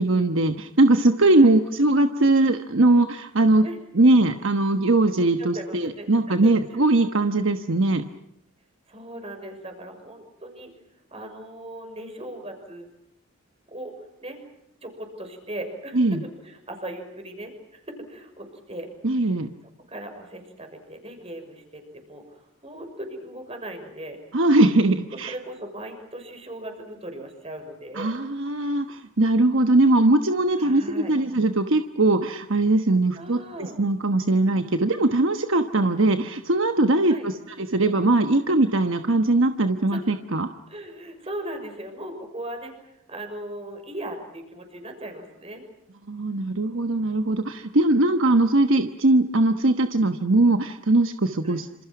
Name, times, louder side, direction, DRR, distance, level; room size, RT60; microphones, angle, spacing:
voice 1, 0.0-3.6 3.9-8.0 15.9-16.2 19.0-19.5 24.3-25.3 28.0-40.5 46.1-51.8, right 2 dB, 60° right, 7 dB, 1.2 m, -20 dB
voice 2, 5.3-6.1 6.4-6.8 8.9-10.7 11.1-12.9 13.7-14.4 14.8-18.9 19.2-19.4 19.9-24.2 24.9-25.0 25.3-28.2 28.6-28.8 30.6-31.1 33.1-33.7 37.0-37.3 39.9-40.0 40.7-45.6 51.4-51.6, right 1 dB, 25° right, 5 dB, 6.1 m, -38 dB
27.5 x 27.0 x 6.0 m, 0.83 s
head